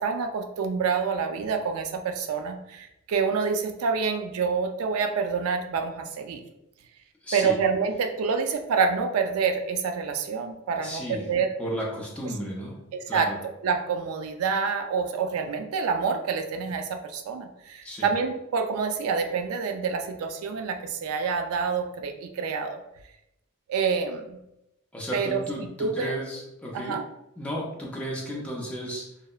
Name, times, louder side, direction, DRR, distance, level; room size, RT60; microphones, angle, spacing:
voice 1, 0.0-6.4 7.3-11.5 12.9-22.8 23.7-24.4 25.1-26.1 26.7-27.0, right 5 dB, 85° right, 6 dB, 0.3 m, -27 dB
voice 2, 7.2-7.5 10.8-11.2 11.6-12.8 13.1-13.4 17.8-18.1 24.9-27.0 27.4-29.1, equal, 5° left, -4 dB, 0.4 m, -33 dB
2.8 x 2.0 x 2.3 m, 0.86 s
head